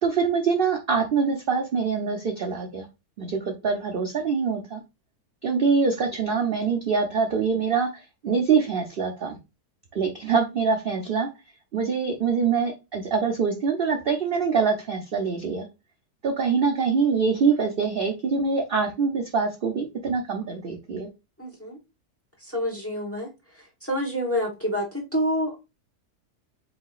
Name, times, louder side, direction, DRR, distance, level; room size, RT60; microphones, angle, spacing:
voice 1, 0.0-2.9 3.2-4.8 5.4-9.4 9.9-11.3 11.7-15.7 16.2-21.1, right 5 dB, 55° right, 3 dB, 0.6 m, -24 dB
voice 2, 21.4-21.8 22.4-23.3 23.5-25.6, equal, 10° left, 1 dB, 0.9 m, -28 dB
7.7 x 2.7 x 2.4 m, 0.26 s
omnidirectional pair, 1.7 m